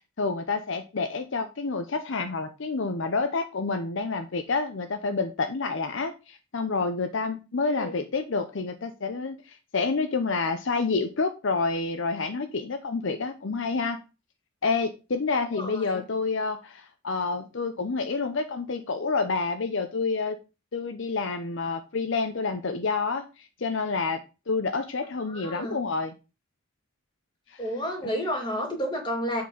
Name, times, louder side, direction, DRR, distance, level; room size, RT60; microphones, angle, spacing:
voice 1, 0.2-14.0 14.6-20.4 20.7-26.1 27.5-27.7, left 4 dB, 60° left, 7 dB, 0.6 m, -28 dB
voice 2, 15.5-16.0 25.3-25.8 27.6-29.4, equal, 20° left, 2 dB, 2.3 m, -31 dB
7.5 x 4.4 x 5.3 m, 0.30 s
head